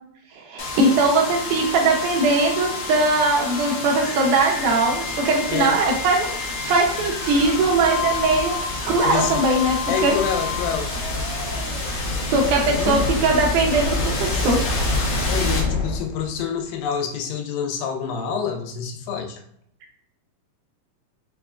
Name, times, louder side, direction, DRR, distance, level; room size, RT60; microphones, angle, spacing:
voice 1, 0.5-8.6 8.9-9.8 10.0-10.1 12.3-14.6, right 3 dB, 80° right, 0 dB, 2.0 m, -20 dB
sound 1, 0.6-16.4, left 3 dB, 70° left, 2.3 m, -27 dB
voice 2, 9.0-9.4 9.9-10.9 12.5-13.0 15.3-19.4, left 7 dB, 90° left, 4 dB, 2.3 m, -27 dB
5.8 x 2.2 x 2.4 m, 0.69 s
omnidirectional pair, 3.9 m